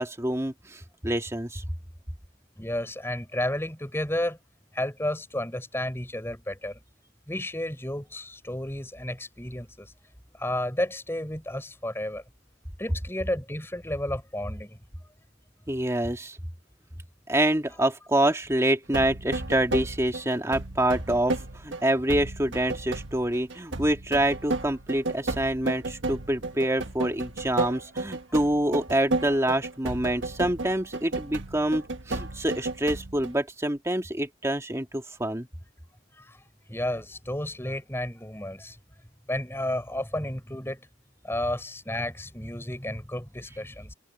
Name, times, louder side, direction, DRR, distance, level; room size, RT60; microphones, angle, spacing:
voice 1, 0.0-1.6 15.7-16.4 17.3-35.5, right 1 dB, 15° right, 2.3 m, -26 dB
voice 2, 2.6-4.4 4.7-6.8 7.3-9.9 10.4-12.2 12.8-14.8 36.1-36.4 36.7-38.8 39.3-40.8 41.2-43.9, left 1 dB, 15° left, 5.8 m, -32 dB
sound 1, 18.9-33.3, right 2 dB, 80° right, 1.5 m, -33 dB
head